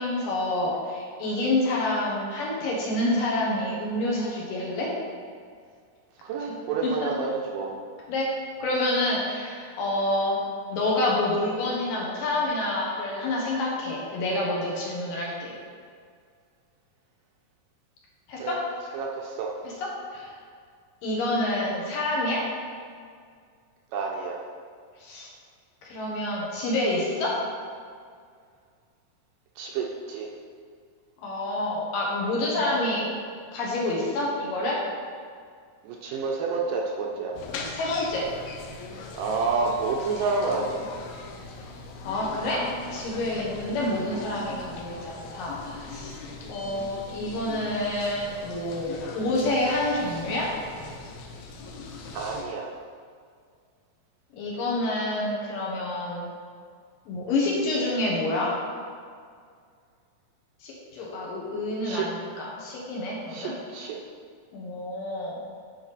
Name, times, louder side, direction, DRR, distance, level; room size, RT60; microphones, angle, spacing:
voice 1, 0.0-4.9 7.0-7.1 8.1-8.3 8.6-10.4 10.7-15.5 18.3-18.6 19.6-20.3 21.0-22.4 25.0-25.3 25.8-27.4 31.2-33.1 33.5-34.8 37.5-38.3 42.0-42.6 42.9-46.2 46.5-50.5 54.4-56.3 57.1-58.5 60.6-63.5 64.5-65.4, left 1 dB, 70° left, -4 dB, 2.8 m, -28 dB
voice 2, 6.2-7.7 18.4-18.6 18.9-19.5 23.9-24.4 29.6-30.3 35.8-37.3 39.1-40.8 52.1-52.7 61.8-62.1 63.3-64.0, right 4 dB, 75° right, -1 dB, 2.1 m, -29 dB
sound 1, 37.3-52.4, left 3 dB, 90° left, 1.6 m, -40 dB
9.0 x 5.1 x 4.1 m, 2.1 s
omnidirectional pair, 4.4 m